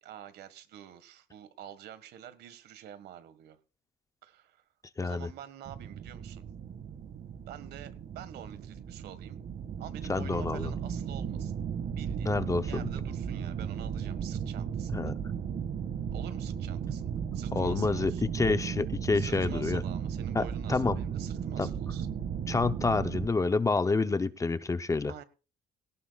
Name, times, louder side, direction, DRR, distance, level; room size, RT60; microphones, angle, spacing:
voice 1, 0.0-3.6 4.2-4.6 5.0-6.4 7.5-9.4 9.8-11.5 11.9-15.1 16.1-18.3 19.1-22.1 25.1-25.2, right 10 dB, 75° right, 1.6 m, -48 dB
voice 2, 5.0-5.3 10.1-10.7 12.3-12.9 14.9-15.1 17.5-19.8 20.3-21.0 21.6-21.7 22.5-25.1, left 3 dB, 20° left, 0.7 m, -28 dB
sound 1, 5.7-23.3, right 8 dB, 55° right, 1.8 m, -35 dB
18.0 x 17.5 x 2.4 m
cardioid pair, 110°, 17 cm